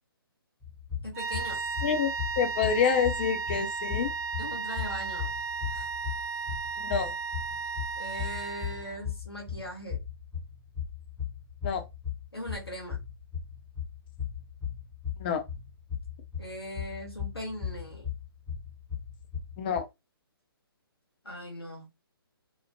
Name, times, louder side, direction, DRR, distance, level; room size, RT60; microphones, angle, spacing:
sound 1, 0.6-19.8, left 8 dB, 5° left, 0.7 m, -38 dB
voice 1, 1.0-1.6 4.4-5.3 5.7-5.9 8.0-10.0 12.3-13.0 16.4-18.1 21.2-21.9, equal, 90° left, 0.9 m, -40 dB
sound 2, 1.1-9.0, right 5 dB, 35° right, 0.9 m, -34 dB
voice 2, 1.8-4.1 6.8-7.1 11.6-11.9 15.2-15.4 19.6-19.8, left 7 dB, 25° left, 0.4 m, -27 dB
2.9 x 2.0 x 2.7 m
figure-of-eight pair, 140°, 13 cm